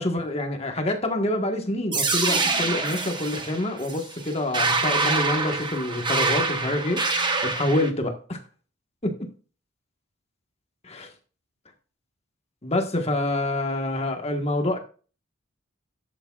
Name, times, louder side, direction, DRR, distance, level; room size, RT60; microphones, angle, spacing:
voice 1, 0.0-7.0 7.4-8.4 9.0-9.1 10.8-11.1 12.6-14.8, left 1 dB, 30° left, 4 dB, 1.4 m, -26 dB
sound 1, 1.9-7.9, right 3 dB, 20° right, 1.0 m, -25 dB
11.5 x 8.5 x 2.4 m, 0.38 s
head